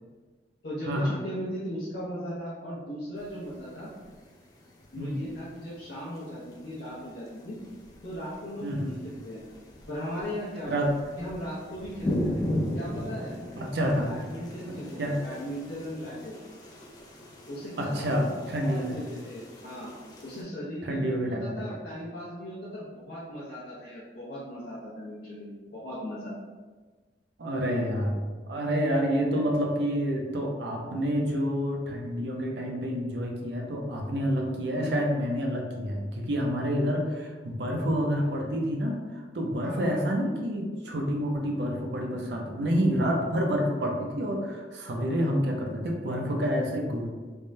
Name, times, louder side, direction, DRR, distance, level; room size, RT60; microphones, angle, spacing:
voice 1, 0.6-3.9 4.9-7.6 8.0-9.4 9.9-10.7 11.2-12.4 12.7-13.3 13.9-16.3 17.5-19.9 20.2-26.3 29.3-29.4 39.6-40.0, equal, 65° left, -9 dB, 0.7 m, -38 dB
sound 1, 3.2-20.4, left 1 dB, 20° left, 0.3 m, -38 dB
voice 2, 8.6-9.0 10.7-10.9 13.6-14.1 15.0-15.2 17.8-19.0 20.8-21.7 27.4-28.2 28.5-47.1, equal, 70° right, 1 dB, 0.5 m, -28 dB
3.4 x 2.1 x 2.6 m, 1.4 s
head